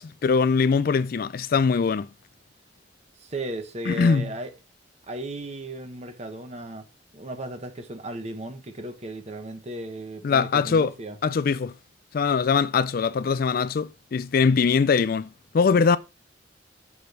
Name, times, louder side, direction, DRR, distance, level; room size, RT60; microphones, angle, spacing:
voice 1, 0.0-2.1 3.9-4.3 10.2-10.9 11.2-11.7 12.1-15.3 15.5-16.0, left 5 dB, 55° left, 0.4 m, -22 dB
voice 2, 3.2-4.5 5.1-6.9 7.1-11.2, right 2 dB, 35° right, 1.3 m, -35 dB
6.1 x 5.2 x 6.0 m
head